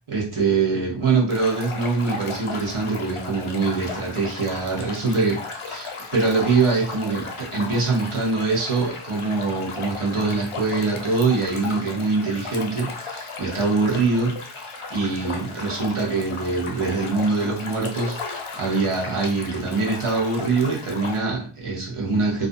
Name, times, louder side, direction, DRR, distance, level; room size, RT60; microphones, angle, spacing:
voice 1, 0.1-5.4 5.7-22.5, right 4 dB, 85° right, -2 dB, 1.0 m, -24 dB
sound 1, 1.3-21.2, left 4 dB, 85° left, 0.7 m, -35 dB
2.5 x 2.4 x 2.5 m, 0.40 s
wide cardioid pair, 65°, 49 cm